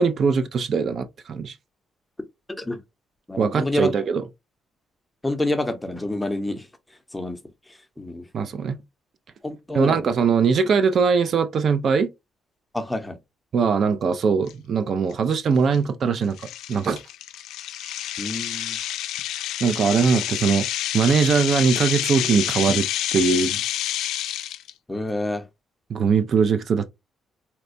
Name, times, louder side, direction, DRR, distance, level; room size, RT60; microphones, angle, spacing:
voice 1, 0.0-1.5 3.4-4.2 8.3-8.8 9.7-12.1 13.5-16.4 16.7-17.0 19.6-20.7 20.9-23.6 25.9-26.9, right 5 dB, 55° right, 0.4 m, -21 dB
voice 2, 2.5-2.8 3.3-3.9 5.2-6.7 7.1-7.4 7.7-8.3 9.4-10.0 12.7-13.2 18.2-18.8 24.9-25.4, left 2 dB, 10° left, 0.7 m, -28 dB
sound 1, 14.5-14.6 15.1-15.3 15.7-15.8 16.4-24.7, left 12 dB, 85° left, 0.3 m, -28 dB
4.1 x 2.2 x 2.6 m
cardioid pair, 90°, 0 cm